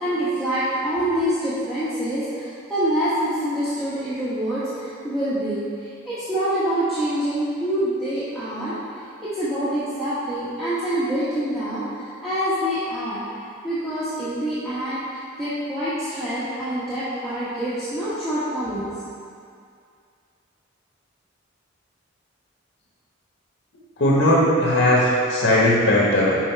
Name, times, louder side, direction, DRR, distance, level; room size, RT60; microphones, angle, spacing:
voice 1, 0.0-8.8 9.2-13.2 13.6-18.9, right 1 dB, ahead, -14 dB, 1.1 m, -26 dB
voice 2, 24.0-26.4, left 1 dB, 65° left, -5 dB, 1.1 m, -18 dB
6.2 x 4.4 x 4.4 m, 2.3 s
head